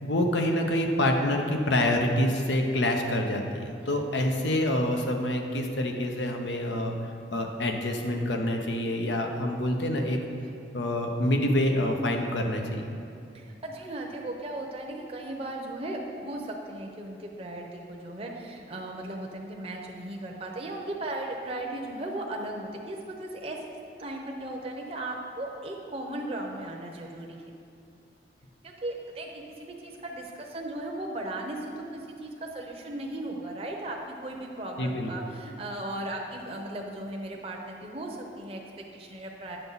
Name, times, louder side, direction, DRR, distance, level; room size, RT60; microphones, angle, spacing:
voice 1, 0.0-6.9 7.3-10.2 10.7-12.9 34.8-35.1, left 1 dB, 85° left, 3 dB, 0.9 m, -26 dB
voice 2, 13.3-27.4 28.6-39.6, right 1 dB, 35° right, 0 dB, 0.7 m, -37 dB
8.9 x 6.9 x 4.0 m, 2.5 s
head